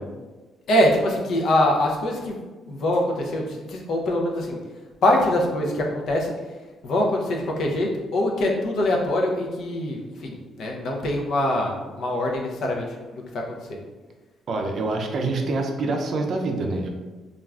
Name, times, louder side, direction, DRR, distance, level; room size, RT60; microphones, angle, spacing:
voice 1, 0.7-2.4 2.7-4.6 5.0-6.6 6.8-13.8, left 1 dB, 70° left, 0 dB, 0.5 m, -24 dB
voice 2, 14.5-16.9, right 3 dB, 60° right, 2 dB, 0.4 m, -26 dB
2.4 x 2.3 x 3.2 m, 1.3 s
cardioid pair, 90°, 0 cm